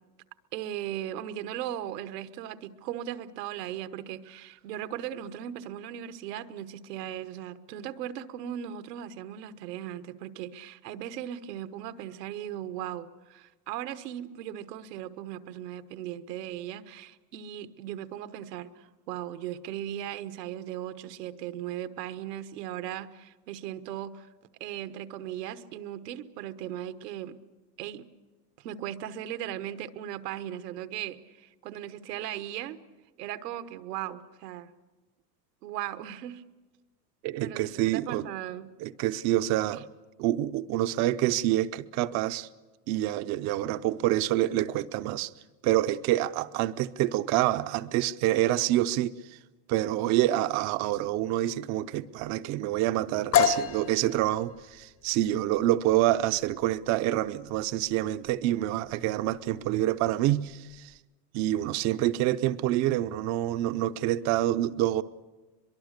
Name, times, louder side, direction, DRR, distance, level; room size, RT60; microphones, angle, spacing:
voice 1, 0.5-24.3 24.6-27.4 27.8-28.1 28.6-32.8 33.2-34.7 35.6-36.4 37.4-38.7, right 11 dB, 80° right, 1.3 m, -38 dB
voice 2, 37.2-38.3 38.8-39.9 40.2-42.5 42.9-45.3 45.6-49.2 49.7-60.9 61.3-65.0, right 14 dB, 35° right, 0.6 m, -27 dB
sound 1, 53.3-61.0, left 8 dB, 30° left, 0.8 m, -32 dB
23.5 x 23.0 x 6.6 m
supercardioid pair, 145°, 48 cm